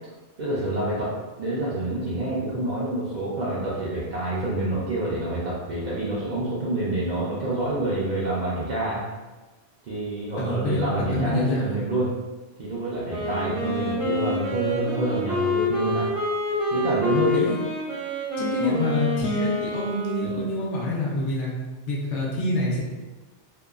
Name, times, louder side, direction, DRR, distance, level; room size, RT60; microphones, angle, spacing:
voice 1, 0.4-9.0 9.9-12.1 12.6-16.1 16.7-17.5 18.6-18.8, right 1 dB, 60° right, -7 dB, 0.4 m, -27 dB
voice 2, 10.4-11.7 17.3-17.6 18.4-21.6 21.9-22.8, left 2 dB, 70° left, -3 dB, 0.9 m, -27 dB
Wind instrument woodwind instrument, 13.1-20.7, left 1 dB, 80° right, 1.1 m, -27 dB
2.7 x 2.2 x 2.3 m, 1.2 s
omnidirectional pair, 1.3 m